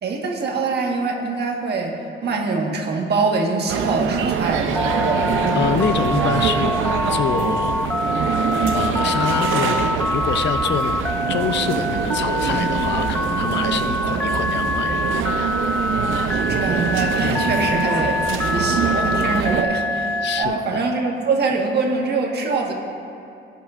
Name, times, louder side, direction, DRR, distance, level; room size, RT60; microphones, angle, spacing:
voice 1, 0.0-5.3 16.3-22.7, right 4 dB, 55° right, 1 dB, 1.5 m, -24 dB
sound 1, 3.7-19.6, right 7 dB, 80° right, 0.6 m, -24 dB
Telephone, 4.8-20.5, left 2 dB, 10° left, 0.3 m, -24 dB
voice 2, 5.5-8.2 8.7-15.0 17.2-17.5 20.2-20.8, left 8 dB, 65° left, 10 dB, 0.5 m, -26 dB
14.5 x 10.5 x 2.5 m, 2.6 s
cardioid pair, 90°, 20 cm